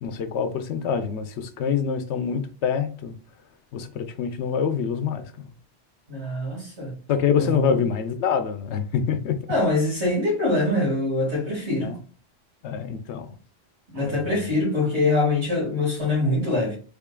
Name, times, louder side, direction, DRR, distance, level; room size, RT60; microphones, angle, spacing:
voice 1, 0.0-3.2 3.7-5.5 7.1-9.4 11.8-12.0 12.6-13.3 14.0-14.5, left 7 dB, 85° left, 0.9 m, -26 dB
voice 2, 6.1-6.9 7.4-7.8 9.5-12.0 13.9-16.8, left 2 dB, 85° right, 2.0 m, -24 dB
3.6 x 3.5 x 2.2 m
omnidirectional pair, 1.1 m